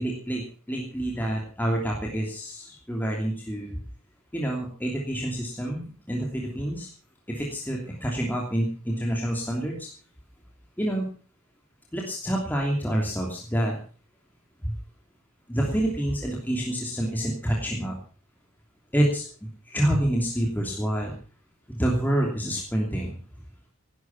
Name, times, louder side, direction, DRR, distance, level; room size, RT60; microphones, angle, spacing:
voice 1, 0.0-3.8 4.3-6.9 7.3-9.9 10.8-11.0 11.9-13.8 14.6-14.7 15.5-18.0 18.9-21.1 21.7-23.2, right 1 dB, 10° left, -1 dB, 2.9 m, -27 dB
18.5 x 11.5 x 5.9 m, 0.41 s
head